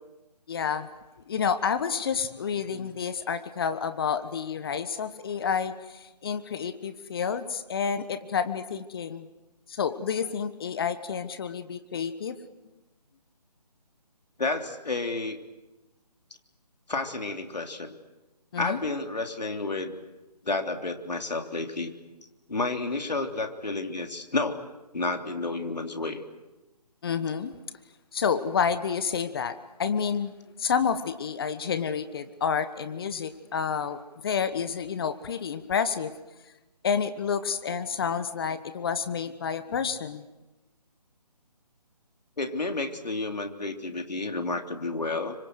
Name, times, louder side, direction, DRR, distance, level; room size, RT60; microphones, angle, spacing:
voice 1, 0.5-0.9 1.3-9.3 9.7-12.4 18.5-18.8 27.0-27.5 28.1-29.5 29.8-30.3 30.6-36.1 36.8-40.2, left 6 dB, 35° left, 12 dB, 1.3 m, -29 dB
voice 2, 14.4-15.4 16.9-17.9 18.6-20.0 20.4-21.9 22.5-24.6 24.9-26.2 42.4-45.3, left 3 dB, 75° left, 5 dB, 3.4 m, -30 dB
28.0 x 25.5 x 8.0 m, 1.0 s
figure-of-eight pair, 155°, 21 cm